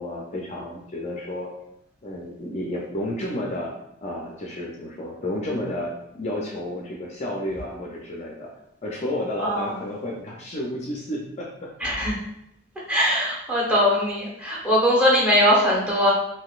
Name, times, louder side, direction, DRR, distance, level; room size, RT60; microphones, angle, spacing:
voice 1, 0.0-1.5 2.0-3.7 4.0-8.5 8.8-12.1, left 1 dB, 35° left, -2 dB, 0.4 m, -31 dB
voice 2, 9.4-9.7 11.8-12.2 12.9-16.1, equal, 5° right, -5 dB, 0.9 m, -20 dB
3.7 x 2.6 x 2.4 m, 0.81 s
head